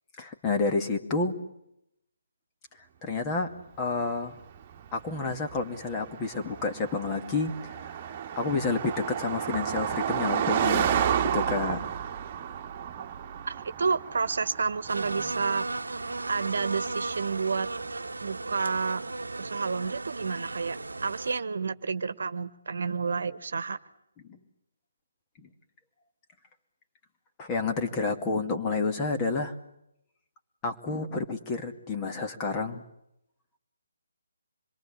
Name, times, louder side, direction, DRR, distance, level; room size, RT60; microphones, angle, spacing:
voice 1, 0.2-1.4 3.0-3.5 3.8-4.4 4.9-7.9 8.4-11.8 24.3-24.4 25.4-25.5 27.4-29.5 30.6-32.8, left 3 dB, 20° left, 5 dB, 2.4 m, -30 dB
Car passing by, 4.2-17.9, right 9 dB, 30° right, 1.7 m, -32 dB
voice 2, 13.5-16.0 16.3-17.7 18.2-19.0 19.3-20.8 21.0-23.8, right 5 dB, 65° right, 14 dB, 1.3 m, -30 dB
sound 1, 14.9-21.4, right 3 dB, 80° right, 1.0 m, -35 dB
26.5 x 22.5 x 8.7 m, 0.79 s
figure-of-eight pair, 145°, 0 cm